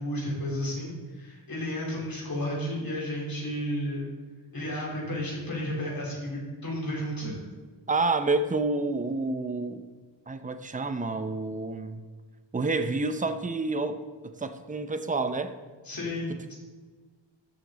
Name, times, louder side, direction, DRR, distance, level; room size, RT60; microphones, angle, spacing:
voice 1, 0.0-4.1 4.5-7.3 15.9-16.5, equal, 50° left, -4 dB, 3.7 m, -32 dB
voice 2, 7.9-9.8 10.3-12.0 12.5-15.6 16.3-16.5, right 3 dB, 20° right, 9 dB, 0.6 m, -29 dB
13.5 x 7.9 x 4.0 m, 1.4 s
wide cardioid pair, 150°, 44 cm